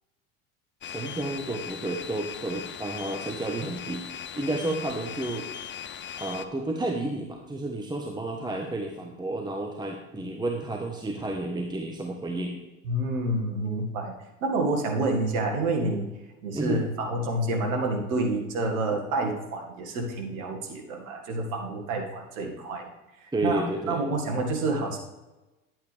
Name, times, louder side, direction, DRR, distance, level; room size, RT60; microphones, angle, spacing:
sound 1, 0.8-6.5, left 9 dB, 30° left, 0.6 m, -39 dB
voice 1, 0.9-4.1 4.4-5.5 6.2-12.6 16.5-16.8 23.3-24.0, right 2 dB, 10° right, 2 dB, 1.1 m, -31 dB
voice 2, 12.8-14.1 14.4-16.1 16.4-22.9 23.4-23.6 23.9-25.0, right 2 dB, 75° right, 2 dB, 2.0 m, -28 dB
10.5 x 8.7 x 3.4 m, 1.1 s
hypercardioid pair, 75°, 41 cm